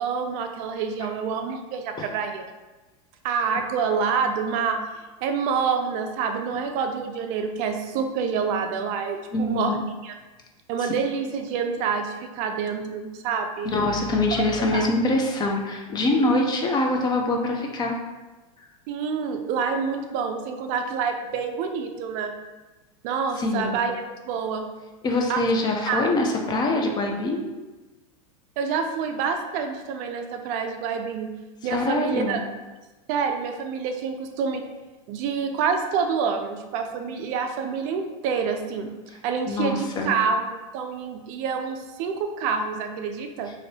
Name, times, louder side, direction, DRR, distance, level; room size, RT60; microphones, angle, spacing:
voice 1, 0.0-2.4 3.2-4.8 5.2-10.1 10.7-13.7 14.3-14.4 14.7-14.9 18.9-22.3 23.0-23.9 24.2-24.6 25.3-25.4 25.9-26.0 28.6-31.3 31.6-32.4 33.1-34.6 35.1-38.9 39.2-40.5 40.7-43.5, right 6 dB, 45° right, 5 dB, 0.4 m, -27 dB
voice 2, 9.3-9.7 10.8-10.9 13.6-17.9 18.6-18.7 23.4-23.8 25.0-27.4 31.7-32.4 39.5-40.1, left 2 dB, 25° left, 2 dB, 0.4 m, -24 dB
2.6 x 2.5 x 3.2 m, 1.2 s
supercardioid pair, 120°, 18 cm